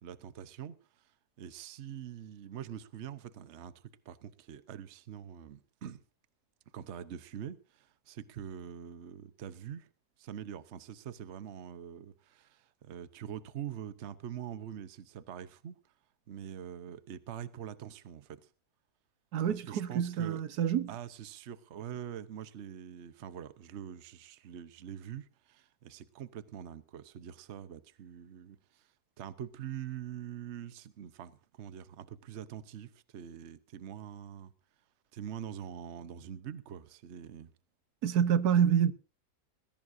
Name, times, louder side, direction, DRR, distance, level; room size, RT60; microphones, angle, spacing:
voice 1, 0.0-6.0 6.7-9.9 10.2-15.8 16.3-18.5 19.5-20.4 20.9-34.5 35.1-37.5, right 9 dB, 50° right, 1.1 m, -44 dB
voice 2, 19.3-20.9 38.0-38.9, right 8 dB, 80° right, 1.4 m, -27 dB
21.0 x 16.0 x 2.6 m
omnidirectional pair, 1.7 m